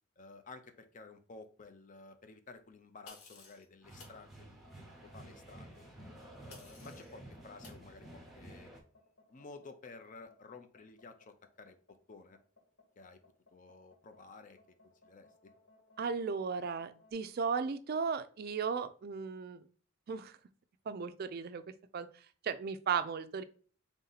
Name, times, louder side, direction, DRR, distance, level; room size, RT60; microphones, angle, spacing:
voice 1, 0.2-5.8 6.5-8.8 9.3-12.4 13.0-13.2 13.5-14.6 15.0-15.5, left 3 dB, 35° left, 8 dB, 0.5 m, -53 dB
sound 1, 3.1-3.7 4.0-4.2 6.5-7.1 7.6-7.8, left 4 dB, 90° left, 1.0 m, -54 dB
sound 2, 3.8-8.8, right 1 dB, ahead, 0.7 m, -52 dB
sound 3, 4.5-17.1, left 2 dB, 65° left, 1.4 m, -65 dB
voice 2, 16.0-19.6 20.1-20.4 20.9-21.6 21.9-22.1 22.4-23.4, right 6 dB, 45° right, 11 dB, 0.3 m, -35 dB
3.6 x 2.7 x 3.9 m, 0.41 s
head